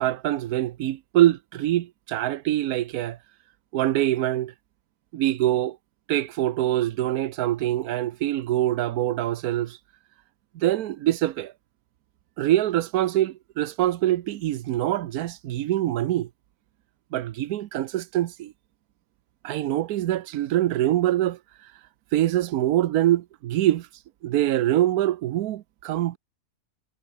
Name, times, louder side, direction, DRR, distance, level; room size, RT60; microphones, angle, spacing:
voice 1, 0.0-3.2 3.7-4.5 5.1-5.8 6.1-9.8 10.6-11.5 12.4-16.3 17.1-18.5 19.4-21.4 22.1-23.9 24.2-26.2, right 13 dB, 85° right, 1.2 m, -24 dB
omnidirectional pair, 1.5 m